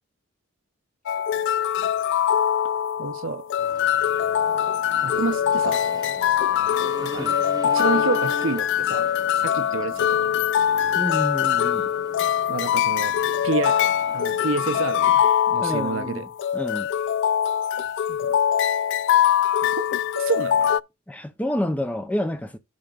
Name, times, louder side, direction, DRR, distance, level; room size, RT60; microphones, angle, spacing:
sound 1, 1.1-20.8, left 9 dB, 60° left, 0.3 m, -23 dB
voice 1, 3.0-3.5 5.0-5.8 7.0-7.3 7.6-9.1 9.4-10.5 12.5-13.8 14.1-15.1 15.5-16.3 18.1-18.4 19.6-19.9 20.1-20.7, right 4 dB, 65° right, 0.7 m, -29 dB
sound 2, 3.6-15.2, right 1 dB, 20° right, 1.0 m, -42 dB
voice 2, 11.0-11.9 15.6-16.3 16.5-16.9 21.1-22.6, left 1 dB, 5° left, 0.6 m, -28 dB
12.0 x 5.0 x 2.4 m
head